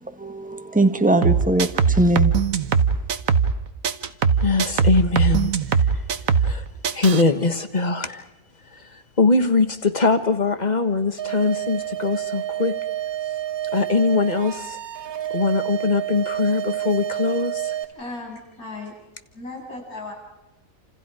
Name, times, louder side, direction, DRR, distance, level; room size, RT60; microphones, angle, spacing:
voice 1, 0.2-2.3, right 1 dB, 5° right, 7 dB, 1.5 m, -20 dB
sound 1, 1.2-3.6 3.8-6.6 6.8-7.2, right 6 dB, 70° right, 1.5 m, -20 dB
voice 2, 4.4-5.5 6.4-6.6 6.9-8.2 8.7-8.8 9.2-12.8 13.7-14.8 15.3-17.8, left 3 dB, 30° left, 9 dB, 1.6 m, -21 dB
sound 2, 11.2-17.8, right 12 dB, 85° right, 1.8 m, -29 dB
voice 3, 17.7-18.9 19.3-20.1, left 2 dB, 80° left, -1 dB, 8.2 m, -36 dB
29.0 x 28.0 x 5.0 m, 0.91 s
omnidirectional pair, 1.5 m